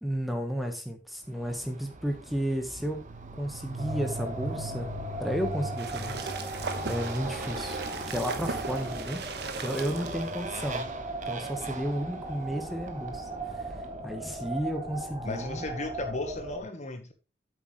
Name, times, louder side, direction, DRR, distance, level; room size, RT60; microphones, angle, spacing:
voice 1, 0.0-3.1 3.4-4.9 5.2-7.8 8.1-9.2 9.6-10.9 11.2-13.3 13.5-13.6 14.0-15.7, equal, ahead, 1.4 m, -33 dB
Motorcycle, 1.3-14.0, right 2 dB, 45° right, 1.3 m, -40 dB
sound 1, 3.8-16.6, right 2 dB, 25° right, 2.8 m, -39 dB
sound 2, 5.8-10.8, right 4 dB, 60° right, 1.3 m, -38 dB
voice 2, 15.2-17.1, left 2 dB, 40° left, 1.3 m, -35 dB
8.3 x 8.1 x 3.2 m
head